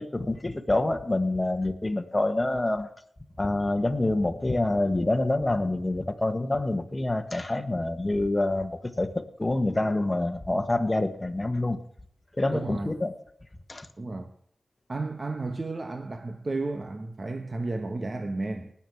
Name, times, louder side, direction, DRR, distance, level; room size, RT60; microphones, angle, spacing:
voice 1, 0.0-2.9 3.4-11.8 12.4-13.1 13.7-13.9, left 2 dB, 25° left, 1.5 m, -27 dB
voice 2, 12.5-12.9 14.0-14.3 14.9-18.7, right 2 dB, 40° right, 1.2 m, -32 dB
19.0 x 7.3 x 4.7 m
cardioid pair, 60°, 0 cm